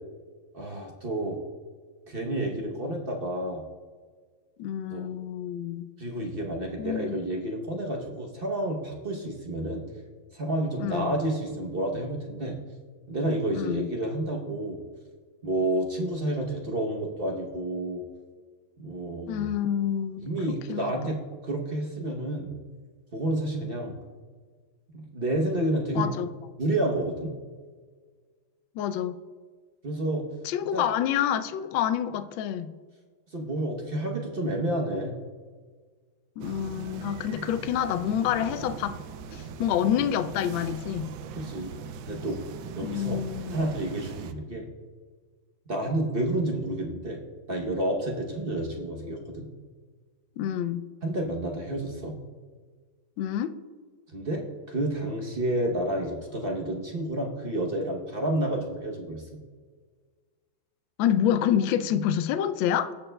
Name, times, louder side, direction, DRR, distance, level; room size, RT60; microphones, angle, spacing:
voice 1, 0.5-1.4 2.1-3.6 4.9-5.1 6.0-9.8 10.3-12.6 13.1-14.8 15.4-18.0 18.8-19.5 20.2-21.2 21.4-22.5 23.1-23.9 24.9-26.1 26.6-27.3 29.8-30.3 30.7-30.9 33.3-35.1 41.3-41.7 42.1-42.5 42.8-43.2 43.5-44.7 45.7-47.2 47.5-49.5 51.0-52.2 54.1-59.3, right 1 dB, 50° right, 0 dB, 0.6 m, -30 dB
voice 2, 4.6-5.9 6.8-7.2 10.8-11.1 13.5-13.9 19.3-21.1 25.9-26.3 28.8-29.2 30.4-32.7 36.4-39.0 39.3-41.1 42.8-43.7 50.4-50.8 53.2-53.5 61.0-62.9, left 10 dB, 75° left, 11 dB, 1.2 m, -28 dB
sound 1, 36.4-44.3, right 6 dB, 75° right, 1.3 m, -40 dB
17.5 x 6.6 x 2.2 m, 1.5 s
omnidirectional pair, 2.2 m